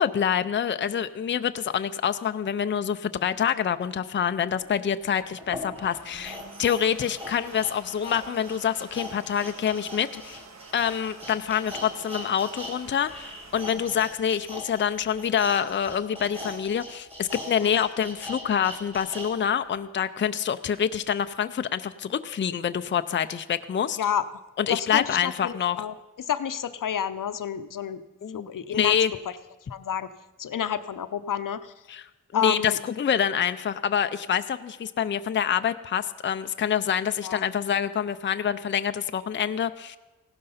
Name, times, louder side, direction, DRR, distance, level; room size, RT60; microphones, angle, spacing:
voice 1, 0.0-10.4 10.7-24.0 24.6-25.8 28.2-29.1 31.9-32.1 32.3-40.0, left 8 dB, 35° left, 10 dB, 0.4 m, -26 dB
sound 1, 4.6-4.7 5.4-12.7 13.0-19.3 19.7-19.8, left 1 dB, 20° right, 3.5 m, -40 dB
Domestic sounds home sounds, 5.1-15.4, right 4 dB, 55° right, 1.1 m, -49 dB
voice 2, 24.7-28.0 28.3-28.9 29.7-30.1 30.4-31.7 32.3-32.8 37.2-37.4, left 9 dB, 80° left, 12 dB, 0.7 m, -30 dB
16.5 x 12.0 x 5.6 m, 1.1 s
wide cardioid pair, 170°, 32 cm